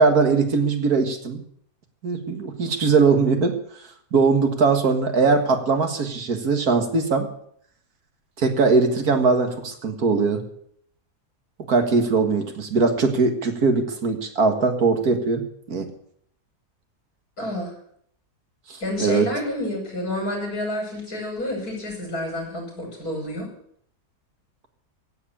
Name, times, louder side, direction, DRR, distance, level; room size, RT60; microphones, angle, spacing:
voice 1, 0.0-1.4 2.0-3.6 4.1-7.3 8.4-10.4 11.7-15.9 18.7-19.3, right 4 dB, 70° right, 6 dB, 2.2 m, -20 dB
voice 2, 17.4-17.7 18.8-23.5, left 1 dB, 70° left, 0 dB, 6.5 m, -29 dB
16.0 x 8.1 x 8.5 m, 0.67 s
omnidirectional pair, 1.7 m